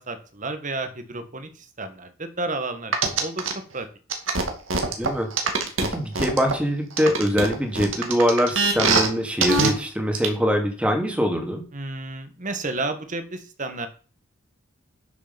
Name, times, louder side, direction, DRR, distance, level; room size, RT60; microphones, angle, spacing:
voice 1, 0.0-3.4 3.7-3.9 11.7-13.9, right 2 dB, 40° right, 8 dB, 1.6 m, -31 dB
sound 1, 2.9-3.5 4.1-6.5 7.0-9.1 9.4-9.7 10.1-10.3, right 4 dB, 80° right, 2.3 m, -22 dB
voice 2, 5.8-11.6, equal, 5° right, 3 dB, 2.2 m, -23 dB
11.5 x 6.7 x 5.3 m, 0.39 s
head